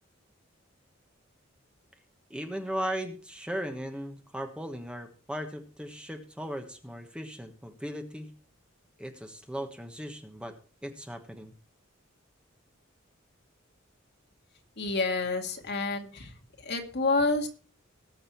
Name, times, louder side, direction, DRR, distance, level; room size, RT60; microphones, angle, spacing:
voice 1, 2.3-8.3 9.0-10.6 10.8-11.5, equal, 5° right, 5 dB, 1.3 m, -37 dB
voice 2, 14.8-16.3 16.6-17.5, left 3 dB, 55° left, 4 dB, 2.1 m, -28 dB
19.5 x 6.7 x 4.4 m, 0.38 s
head